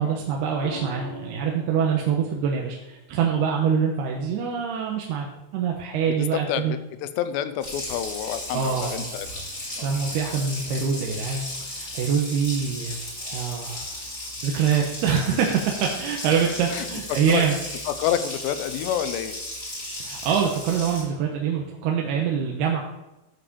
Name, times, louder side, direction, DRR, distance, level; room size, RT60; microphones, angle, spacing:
voice 1, 0.0-5.3 5.5-6.7 8.5-9.0 9.7-14.0 14.4-17.6 20.0-22.8, right 7 dB, 75° right, 0 dB, 3.0 m, -25 dB
sound 1, 0.6-4.8 6.5-6.8, left 1 dB, 65° left, 2.9 m, -43 dB
voice 2, 6.1-9.3 9.8-9.9 15.3-15.4 16.7-17.4 17.9-19.4, left 10 dB, 85° left, 12 dB, 2.9 m, -29 dB
Water tap faucet, 7.6-21.0, left 1 dB, 20° left, 3.4 m, -35 dB
12.5 x 5.9 x 6.7 m, 0.94 s
omnidirectional pair, 4.9 m